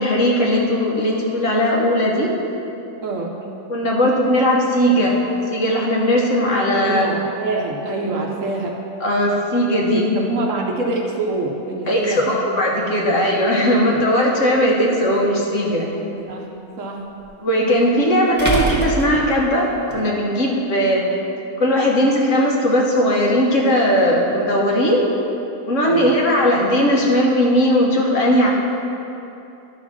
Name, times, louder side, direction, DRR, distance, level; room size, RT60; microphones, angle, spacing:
voice 1, 0.0-2.3 3.7-5.2 5.5-7.1 9.0-10.0 11.9-15.9 17.4-21.1 21.6-25.1 25.6-28.5, equal, 55° left, -2 dB, 1.4 m, -18 dB
voice 2, 3.0-3.3 6.8-8.8 9.9-12.4 12.9-13.1 13.9-14.0 15.9-16.5 16.8-17.0 25.8-26.1, right 3 dB, 60° right, 0 dB, 1.1 m, -25 dB
sound 1, 14.5-14.6 17.2-17.3 18.4-20.0, right 2 dB, 5° right, 1.4 m, -24 dB
11.0 x 4.0 x 6.0 m, 2.9 s
omnidirectional pair, 1.7 m